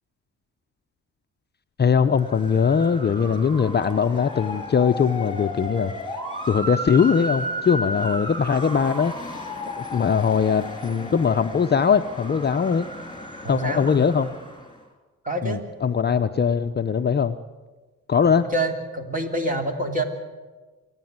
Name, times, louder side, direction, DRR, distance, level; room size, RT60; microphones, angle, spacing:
voice 1, 1.8-5.9 6.5-9.1 9.8-12.9 13.5-14.3 15.4-17.4 18.1-18.5, left 6 dB, 35° left, 8 dB, 0.7 m, -21 dB
Motor vehicle (road) / Siren, 2.1-14.8, equal, 15° left, 3.5 m, -34 dB
voice 2, 13.4-14.0 15.2-15.6 18.5-20.0, right 1 dB, 25° right, 4 dB, 3.2 m, -26 dB
28.0 x 9.8 x 9.4 m, 1.3 s
cardioid pair, 90°, 30 cm